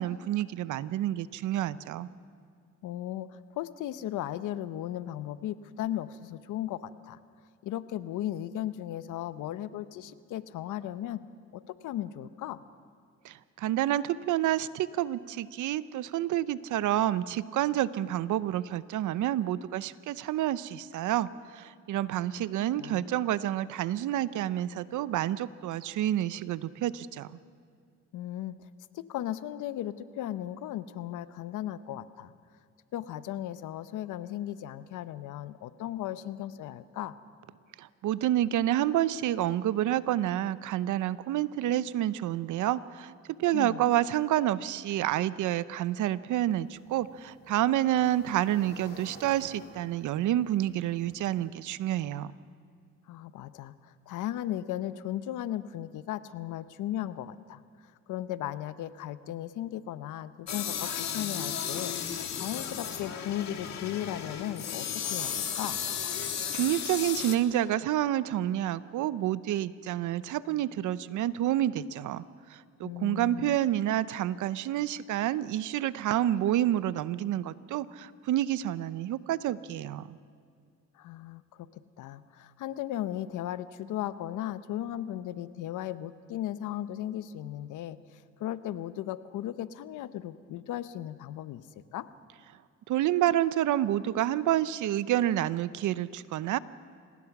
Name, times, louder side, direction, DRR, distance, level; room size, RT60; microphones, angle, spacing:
voice 1, 0.0-2.1 13.2-27.3 37.8-43.1 43.4-52.3 66.5-72.2 72.5-80.2 92.9-96.6, right 12 dB, 80° right, 16 dB, 0.7 m, -29 dB
voice 2, 2.8-7.2 7.6-11.2 11.5-12.6 22.0-22.4 22.8-23.1 28.1-28.7 28.9-32.3 32.9-37.2 43.5-43.9 53.1-57.6 58.1-61.9 62.3-65.8 72.8-73.6 80.9-91.6 91.9-92.1, left 12 dB, 85° left, 14 dB, 0.8 m, -36 dB
sound 1, 46.4-51.4, left 2 dB, 35° left, 7.8 m, -53 dB
sound 2, 60.5-67.4, left 8 dB, 60° left, 1.9 m, -34 dB
26.5 x 19.5 x 6.0 m, 2.2 s
cardioid pair, 90°, 30 cm